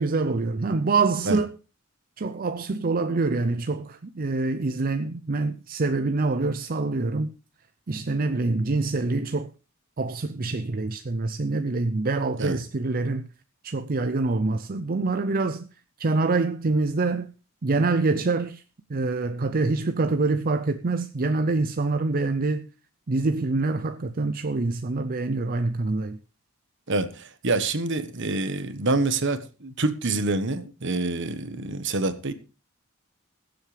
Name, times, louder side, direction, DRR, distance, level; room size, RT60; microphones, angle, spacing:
voice 1, 0.0-1.5 2.2-7.3 7.9-9.5 10.0-13.3 13.6-15.7 16.0-17.3 17.6-18.6 18.9-22.7 23.1-26.2, right 3 dB, 45° right, 0.6 m, -25 dB
voice 2, 26.9-32.3, right 2 dB, 60° right, 1.3 m, -26 dB
21.5 x 7.7 x 3.3 m
head